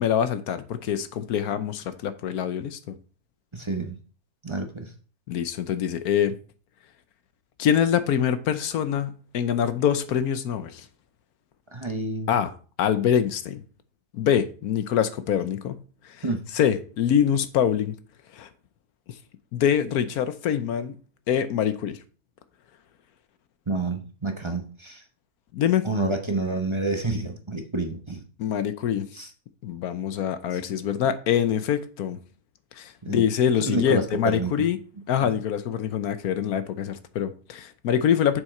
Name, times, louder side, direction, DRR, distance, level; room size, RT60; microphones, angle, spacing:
voice 1, 0.0-2.9 5.3-6.4 7.6-10.9 12.3-12.5 12.8-13.6 14.1-16.2 16.5-17.9 18.3-18.5 19.5-21.0 21.3-22.0 25.5-25.8 28.4-29.1 29.6-32.2 32.8-34.8 35.1-38.4, left 9 dB, 70° left, 1.2 m, -24 dB
voice 2, 3.5-4.0 4.4-4.9 11.7-12.3 16.2-16.4 23.7-25.0 25.8-28.2 29.1-29.3 33.0-33.2 33.6-34.5, right 2 dB, 25° right, 0.8 m, -28 dB
7.4 x 6.1 x 4.3 m
omnidirectional pair, 1.7 m